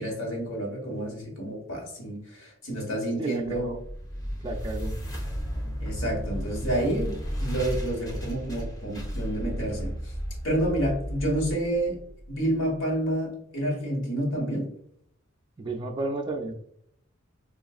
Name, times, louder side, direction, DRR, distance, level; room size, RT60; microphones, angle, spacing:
voice 1, 0.0-3.7 5.8-10.1 10.4-12.0 12.3-14.7, right 1 dB, 70° left, 0 dB, 1.3 m, -29 dB
voice 2, 3.2-3.8 4.4-4.9 15.6-16.5, right 2 dB, 25° right, 2 dB, 0.3 m, -32 dB
sound 1, 3.5-12.6, equal, 20° left, 0.6 m, -34 dB
3.9 x 2.4 x 2.3 m, 0.69 s
head